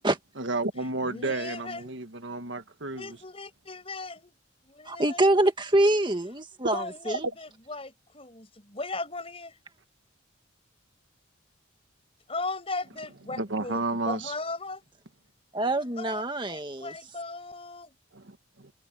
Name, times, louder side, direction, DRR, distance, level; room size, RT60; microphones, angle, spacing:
voice 1, 0.4-3.2 7.2-7.3 13.3-14.3 18.1-18.7, right 2 dB, 65° right, 1.6 m, -32 dB
voice 2, 1.0-1.9 2.9-4.3 4.6-5.3 6.7-9.6 12.3-14.8 15.6-17.9, left 3 dB, 30° left, 6.1 m, -37 dB
voice 3, 4.9-7.3 15.5-16.9, right 1 dB, 25° right, 1.9 m, -25 dB
head